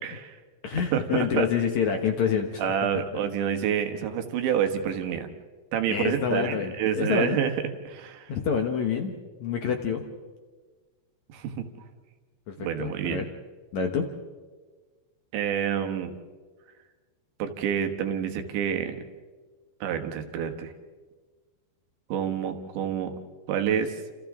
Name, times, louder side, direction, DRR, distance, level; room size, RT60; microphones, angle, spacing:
voice 1, 0.0-0.3 0.8-1.5 2.6-5.3 5.7-7.5 7.9-8.3 11.3-11.7 12.6-13.2 15.3-16.2 17.4-19.0 19.8-20.7 22.1-23.1 23.5-24.0, right 8 dB, 85° right, 6 dB, 3.7 m, -28 dB
voice 2, 0.6-2.6 5.9-7.4 8.3-10.0 12.5-13.3 13.7-14.1, left 6 dB, 70° left, 4 dB, 1.7 m, -27 dB
29.5 x 27.5 x 3.7 m, 1.4 s
omnidirectional pair, 5.0 m